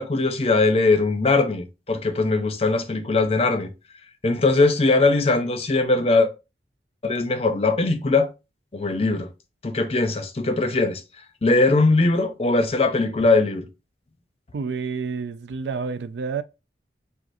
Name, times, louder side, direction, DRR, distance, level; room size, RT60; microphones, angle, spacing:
voice 1, 0.0-3.7 4.2-6.3 7.0-8.3 8.7-9.3 9.6-11.0 11.4-13.7, left 3 dB, 35° left, 0.6 m, -20 dB
voice 2, 14.5-16.4, right 5 dB, 75° right, 0.4 m, -29 dB
6.1 x 2.4 x 2.6 m
head